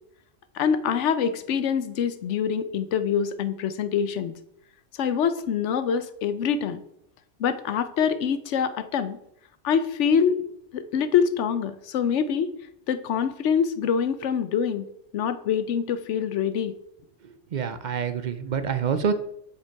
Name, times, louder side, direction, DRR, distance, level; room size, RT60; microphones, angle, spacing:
voice 1, 0.5-4.3 5.0-6.8 7.4-9.2 9.6-10.4 10.7-12.5 12.9-14.8 15.1-16.7, left 7 dB, 75° left, 12 dB, 1.0 m, -25 dB
voice 2, 17.2-19.1, right 7 dB, 50° right, 11 dB, 0.6 m, -27 dB
7.2 x 5.2 x 4.5 m, 0.76 s
omnidirectional pair, 1.3 m